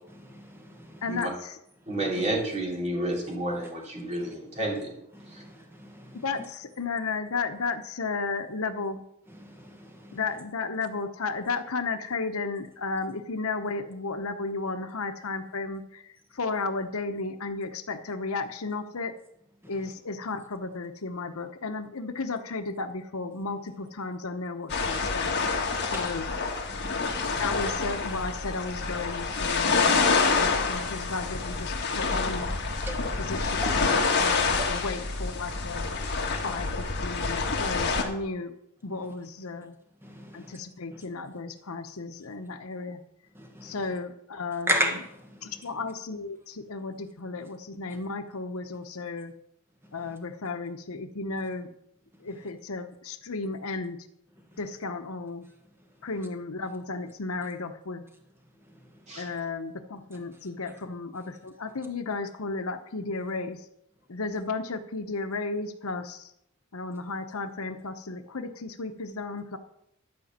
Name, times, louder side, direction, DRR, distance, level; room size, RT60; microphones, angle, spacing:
voice 1, 0.2-1.0 2.1-2.2 3.6-3.7 4.2-4.3 5.2-6.1 9.4-9.8 10.0-10.2 25.9-26.1 26.7-27.4 32.9-33.1 33.6-33.7 36.3-36.4 40.0-40.5 43.4-43.8 44.7-45.0, right 1 dB, 10° right, 3 dB, 1.6 m, -33 dB
voice 2, 1.0-1.6 6.1-9.0 10.1-19.1 19.7-25.4 25.8-26.3 27.3-32.5 33.2-35.9 36.4-38.5 38.8-39.7 40.3-43.0 43.6-45.0 45.4-49.3 49.9-51.7 52.2-54.0 54.6-55.4 56.0-58.0 59.2-63.6 64.1-66.3 66.7-69.6, left 3 dB, 80° left, 8 dB, 1.0 m, -34 dB
voice 3, 1.9-5.0 5.3-5.4 59.1-59.2, right 1 dB, 35° right, -2 dB, 3.1 m, -30 dB
sound 1, 24.7-38.0, left 4 dB, 55° left, 1.7 m, -27 dB
12.0 x 5.2 x 7.4 m, 0.79 s
head